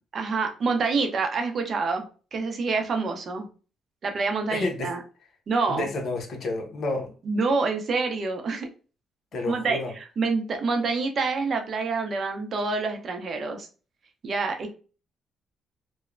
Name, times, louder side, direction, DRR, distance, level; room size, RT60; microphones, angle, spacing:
voice 1, 0.1-3.5 4.0-5.0 5.5-5.9 7.2-8.7 9.5-13.7 14.2-14.7, right 4 dB, 50° right, 5 dB, 0.6 m, -27 dB
voice 2, 4.5-4.9 5.7-7.1 9.3-9.9, left 2 dB, 60° left, 3 dB, 0.7 m, -30 dB
3.0 x 2.0 x 2.4 m, 0.36 s
cardioid pair, 90°, 0 cm